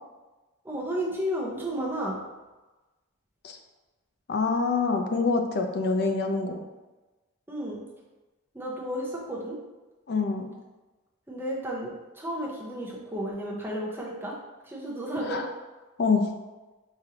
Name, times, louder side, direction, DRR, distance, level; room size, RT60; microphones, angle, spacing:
voice 1, 0.6-2.2 7.5-7.8 8.5-9.6 11.3-14.4 14.6-15.4, equal, 10° right, -4 dB, 0.6 m, -32 dB
voice 2, 4.3-6.6 10.1-10.5 15.2-15.5 16.0-16.3, left 4 dB, 50° left, 5 dB, 0.4 m, -26 dB
4.9 x 2.6 x 2.8 m, 1.2 s
head